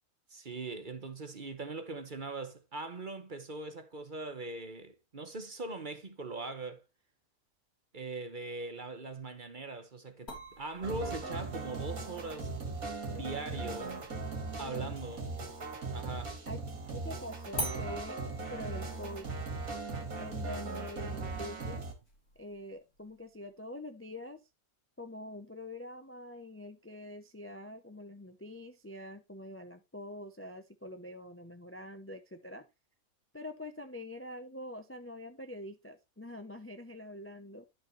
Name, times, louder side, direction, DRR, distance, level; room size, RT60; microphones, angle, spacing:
voice 1, 0.3-6.8 7.9-12.6 13.1-14.0 14.6-15.4 15.9-16.4, right 3 dB, 40° right, 1.1 m, -41 dB
sound 1, 10.3-15.9 17.6-22.6, equal, 90° left, 3.6 m, -47 dB
sound 2, 10.8-21.9, right 3 dB, 70° right, 2.4 m, -39 dB
voice 2, 14.6-14.9 16.5-18.2 18.5-19.3 20.2-21.9 22.4-24.4 25.0-32.7 33.3-37.6, left 1 dB, 15° left, 0.5 m, -45 dB
10.5 x 6.6 x 3.1 m
omnidirectional pair, 1.5 m